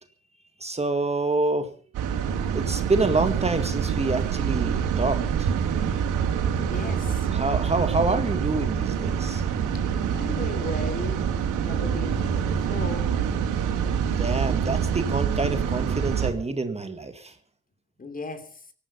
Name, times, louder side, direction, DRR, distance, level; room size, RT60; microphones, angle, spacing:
voice 1, 0.6-1.7 2.5-5.5 7.3-9.4 14.2-17.3, right 3 dB, 20° right, 7 dB, 1.9 m, -27 dB
sound 1, 1.9-16.3, right 7 dB, 85° right, 3.3 m, -26 dB
voice 2, 6.7-7.3 9.7-9.8 10.1-11.3 11.6-13.1 18.0-18.5, left 3 dB, 30° left, 8 dB, 3.2 m, -36 dB
18.0 x 13.5 x 5.5 m, 0.43 s
cardioid pair, 90°, 30 cm